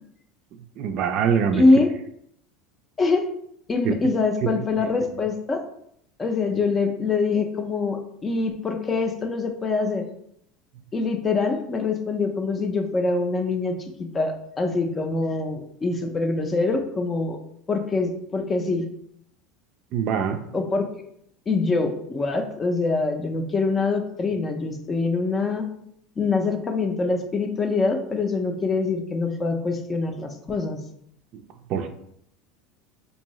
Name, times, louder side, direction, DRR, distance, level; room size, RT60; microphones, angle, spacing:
voice 1, 0.8-1.6 3.8-4.0 4.4-4.5 19.9-20.4 31.7-31.9, right 7 dB, 55° right, 7 dB, 0.4 m, -23 dB
voice 2, 1.5-1.9 3.0-3.3 3.7-5.6 6.2-10.1 10.9-17.4 17.7-18.9 20.5-21.1 21.5-25.7 26.2-30.8, left 3 dB, 25° left, 5 dB, 0.5 m, -24 dB
3.6 x 2.7 x 3.0 m, 0.72 s
supercardioid pair, 120°, 0 cm